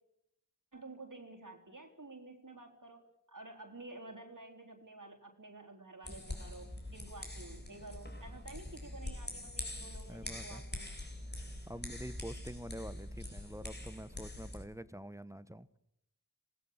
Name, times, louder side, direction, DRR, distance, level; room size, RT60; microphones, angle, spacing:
voice 1, 0.7-10.9, right 2 dB, 60° right, 1 dB, 3.9 m, -51 dB
sound 1, 6.0-14.6, left 1 dB, 30° left, 4.2 m, -44 dB
voice 2, 10.1-10.6 11.7-15.8, right 1 dB, 10° right, 15 dB, 1.1 m, -46 dB
27.5 x 18.5 x 7.4 m, 0.79 s
wide cardioid pair, 50°, 35 cm